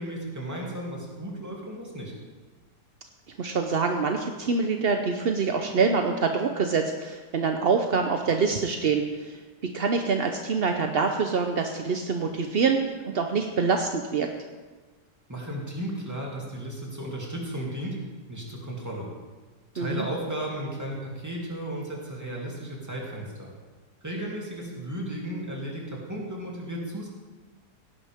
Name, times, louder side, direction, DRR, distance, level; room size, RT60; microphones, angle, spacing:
voice 1, 0.0-2.1 15.3-18.0 18.3-19.1 19.7-23.5 24.0-27.1, right 1 dB, 10° right, -3 dB, 2.6 m, -34 dB
voice 2, 3.4-9.4 9.7-12.8 13.0-14.3 19.8-20.1, right 5 dB, 60° right, 5 dB, 0.6 m, -25 dB
17.0 x 11.0 x 3.6 m, 1.3 s
omnidirectional pair, 1.9 m